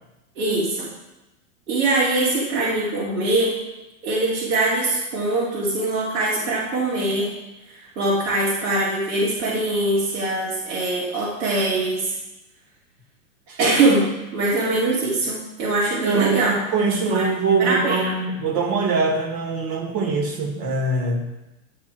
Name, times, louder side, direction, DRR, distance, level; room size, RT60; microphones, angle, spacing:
voice 1, 0.3-0.9 1.7-3.6 4.0-7.3 7.7-12.1 13.6-16.5 17.0-17.3 17.6-18.1, right 2 dB, 80° right, -9 dB, 3.0 m, -22 dB
voice 2, 16.0-21.3, right 4 dB, 45° right, 3 dB, 2.0 m, -23 dB
11.5 x 5.5 x 4.6 m, 1.0 s
supercardioid pair, 140°, 42 cm